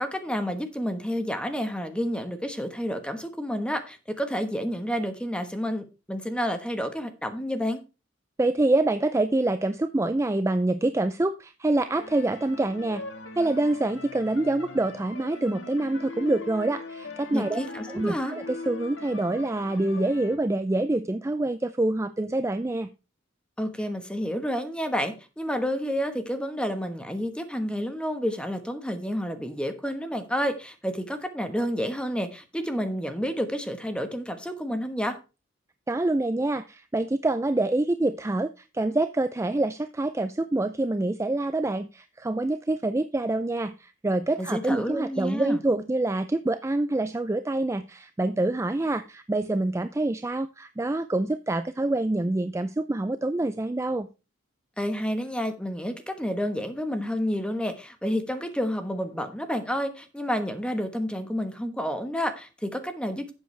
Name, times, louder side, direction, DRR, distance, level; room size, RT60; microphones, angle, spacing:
voice 1, 0.0-7.8 17.3-18.3 23.6-35.2 44.4-45.6 54.8-63.3, equal, 5° left, 1.2 m, -30 dB
voice 2, 8.4-13.0 13.4-17.6 17.9-22.9 35.9-54.1, right 2 dB, 15° right, 0.4 m, -26 dB
sound 1, 11.9-20.4, left 3 dB, 75° left, 1.6 m, -41 dB
11.5 x 7.9 x 3.3 m
head